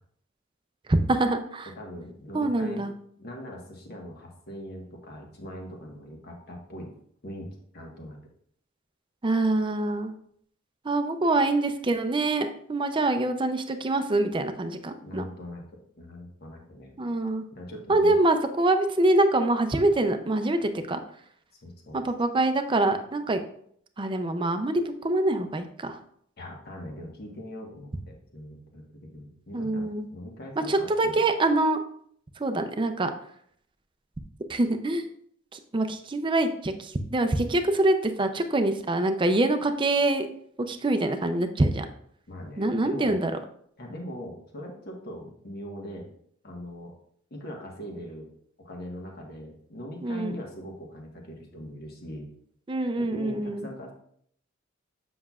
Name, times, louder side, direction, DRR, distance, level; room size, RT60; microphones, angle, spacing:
voice 1, 0.9-1.7 2.3-2.9 9.2-10.1 10.8-15.3 17.0-17.4 17.9-21.0 21.9-23.4 24.0-26.0 29.5-30.1 30.7-31.8 32.4-33.1 34.5-35.1 35.5-40.3 40.7-41.9 42.6-43.3 50.0-50.4 52.7-53.7, right 2 dB, 25° right, 7 dB, 0.5 m, -25 dB
voice 2, 1.7-2.9 3.2-6.9 7.2-8.2 15.0-15.6 16.0-17.0 17.5-18.1 21.6-22.0 26.4-31.2 42.3-43.2 43.8-46.1 46.4-46.9 47.3-48.3 48.6-52.3 53.0-53.9, equal, 55° left, 0 dB, 1.4 m, -41 dB
7.5 x 5.9 x 2.4 m, 0.65 s
head